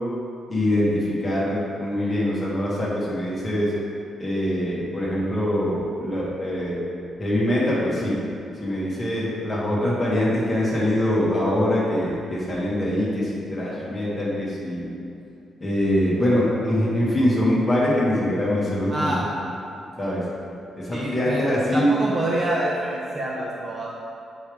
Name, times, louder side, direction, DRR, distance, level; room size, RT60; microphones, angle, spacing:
voice 1, 0.5-3.7 4.2-6.8 7.2-8.1 8.6-14.9 15.6-19.2 20.0-20.2 20.8-21.9, left 1 dB, 20° left, -7 dB, 1.4 m, -23 dB
voice 2, 20.9-21.4 21.7-23.9, right 1 dB, 25° right, -4 dB, 0.6 m, -26 dB
6.9 x 4.7 x 3.4 m, 2.7 s
wide cardioid pair, 165°, 0 cm